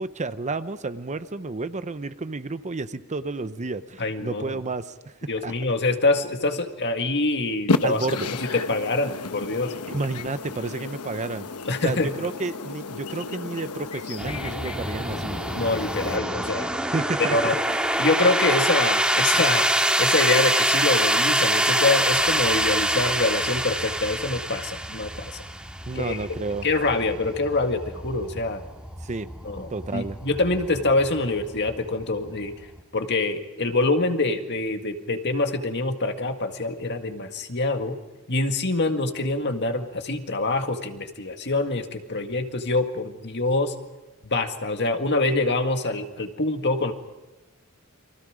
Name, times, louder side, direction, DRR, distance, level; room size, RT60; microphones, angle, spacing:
voice 1, 0.0-5.5 7.8-8.3 9.9-11.5 11.8-15.4 16.9-17.4 17.7-17.8 25.9-26.7 29.0-29.3 29.7-30.2, right 3 dB, 35° right, 12 dB, 0.7 m, -31 dB
voice 2, 4.0-4.6 5.3-8.0 8.5-9.7 11.7-12.1 15.5-16.7 17.3-17.6 18.0-19.7 20.0-25.4 25.9-26.3 26.6-28.6 29.4-32.5 32.9-38.0 38.3-43.7 44.2-46.9, left 2 dB, 50° left, 5 dB, 2.0 m, -25 dB
sound 1, 7.7-16.2, left 3 dB, 85° left, 1.0 m, -32 dB
sound 2, 14.2-32.8, right 1 dB, 5° right, 2.4 m, -26 dB
29.5 x 24.0 x 5.0 m, 1.1 s
head